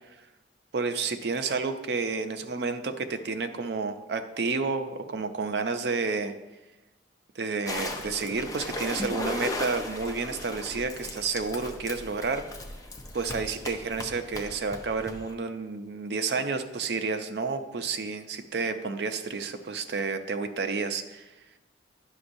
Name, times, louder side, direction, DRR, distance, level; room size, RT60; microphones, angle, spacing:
voice 1, 0.7-6.3 7.4-12.4 13.1-21.3, right 4 dB, 65° right, 8 dB, 0.5 m, -30 dB
sound 1, 7.7-15.3, left 2 dB, 20° left, 0.6 m, -37 dB
9.7 x 6.0 x 2.6 m, 1.0 s
head